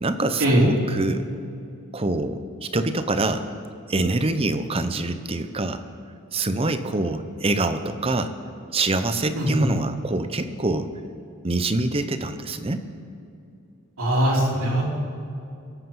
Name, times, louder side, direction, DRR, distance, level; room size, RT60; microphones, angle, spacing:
voice 1, 0.0-1.3 1.9-3.5 3.9-5.8 6.3-8.3 8.7-10.9 11.4-12.8, right 2 dB, 25° right, 9 dB, 0.7 m, -25 dB
voice 2, 14.0-14.8, right 1 dB, 75° right, -2 dB, 3.3 m, -20 dB
23.5 x 8.3 x 5.4 m, 2.6 s
head